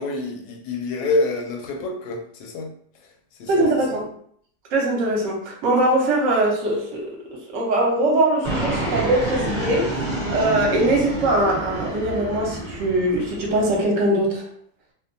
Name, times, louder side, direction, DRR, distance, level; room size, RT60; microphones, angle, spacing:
voice 1, 0.0-2.7 3.4-4.0, left 2 dB, 90° left, 2 dB, 1.2 m, -27 dB
voice 2, 3.5-4.1 4.7-10.0 10.3-14.5, right 1 dB, 60° right, -1 dB, 0.9 m, -21 dB
Fixed-wing aircraft airplane, 8.4-13.8, right 1 dB, 25° right, 0.9 m, -28 dB
2.7 x 2.2 x 2.5 m, 0.63 s
omnidirectional pair, 1.7 m